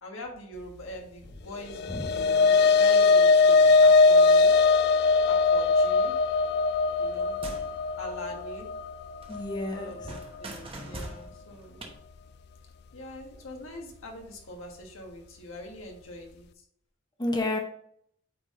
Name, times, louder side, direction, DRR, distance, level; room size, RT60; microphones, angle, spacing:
voice 1, 0.0-4.5 5.2-6.2 7.0-7.4 8.0-8.7 9.7-11.8 12.9-16.6, left 1 dB, 85° left, 1 dB, 1.5 m, -43 dB
sound 1, 1.6-10.2, left 4 dB, 55° left, 0.4 m, -21 dB
sound 2, 7.1-9.0 9.2-11.9, right 1 dB, 25° right, 1.0 m, -43 dB
voice 2, 9.3-9.9 17.2-17.6, left 2 dB, 20° left, 2 dB, 0.8 m, -30 dB
8.5 x 3.7 x 3.7 m, 0.68 s
head